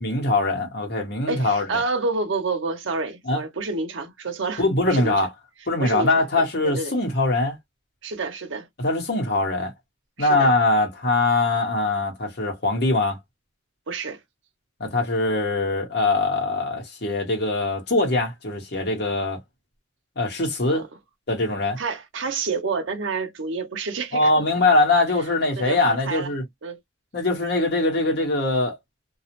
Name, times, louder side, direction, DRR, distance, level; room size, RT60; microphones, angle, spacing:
voice 1, 0.0-1.7 3.3-3.4 4.6-5.3 5.7-7.6 8.8-9.7 10.2-13.2 14.8-19.4 20.2-20.8 21.3-21.8 24.1-26.4 27.1-28.8, left 2 dB, 55° left, 1.0 m, -22 dB
voice 2, 1.3-5.3 5.8-6.9 8.0-8.7 10.2-10.5 13.9-14.2 20.7-20.9 21.8-24.3 25.6-26.3 26.6-26.8, right 4 dB, 75° right, 0.7 m, -29 dB
2.3 x 2.0 x 2.8 m
head